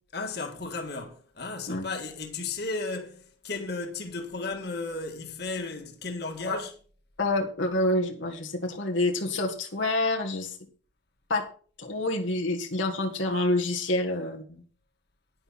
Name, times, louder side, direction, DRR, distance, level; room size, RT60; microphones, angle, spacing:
voice 1, 0.1-6.7, left 3 dB, 60° left, 1.9 m, -34 dB
voice 2, 7.2-10.6 11.3-11.5 11.8-14.6, left 2 dB, 85° left, 1.7 m, -27 dB
10.5 x 10.0 x 4.2 m
head